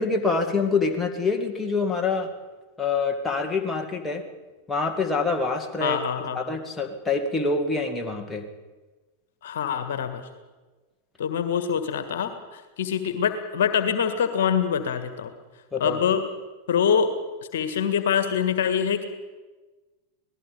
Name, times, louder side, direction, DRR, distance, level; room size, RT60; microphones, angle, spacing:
voice 1, 0.0-2.3 2.8-4.2 4.7-6.0 6.4-8.4 15.7-16.0, left 4 dB, 10° left, 3 dB, 2.2 m, -26 dB
voice 2, 5.8-6.4 9.4-10.2 11.2-15.3 15.8-16.2 16.7-17.1 17.5-19.1, left 7 dB, 60° left, 9 dB, 1.9 m, -24 dB
26.5 x 19.0 x 5.2 m, 1.2 s
figure-of-eight pair, 90°, 0 cm